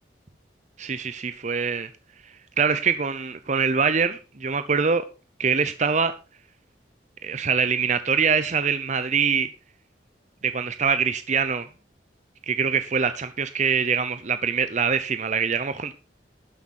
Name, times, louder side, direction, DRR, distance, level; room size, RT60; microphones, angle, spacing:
voice 1, 0.8-1.9 2.6-5.0 5.4-6.2 7.2-9.5 10.4-11.7 12.5-15.9, right 6 dB, 40° right, 0.7 m, -24 dB
12.5 x 9.3 x 4.3 m
head